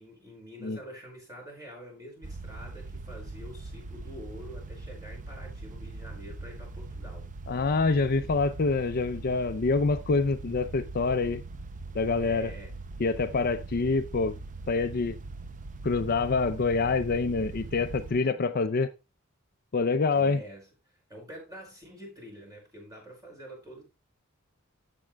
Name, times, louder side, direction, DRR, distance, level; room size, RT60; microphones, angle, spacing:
voice 1, 0.0-7.3 12.2-12.7 20.1-23.8, equal, 15° right, 5.2 m, -47 dB
sound 1, 2.2-18.1, right 3 dB, 40° right, 0.6 m, -41 dB
voice 2, 7.5-11.4 11.9-12.5 13.0-14.4 14.7-15.2 15.8-18.9 19.7-20.4, left 4 dB, 45° left, 0.5 m, -26 dB
13.5 x 7.6 x 2.3 m
head